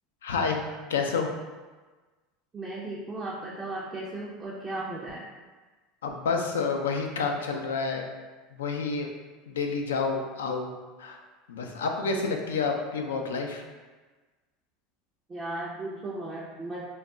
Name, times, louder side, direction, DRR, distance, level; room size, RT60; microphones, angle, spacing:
voice 1, 0.2-0.6 0.9-1.3 6.0-8.1 8.5-9.1 9.5-10.7 11.0-11.2 11.5-13.6, left 4 dB, 90° left, 3 dB, 0.3 m, -29 dB
voice 2, 2.5-5.2 15.3-16.9, right 2 dB, 25° right, -5 dB, 0.4 m, -36 dB
2.3 x 2.0 x 3.5 m, 1.3 s
hypercardioid pair, 90°, 0 cm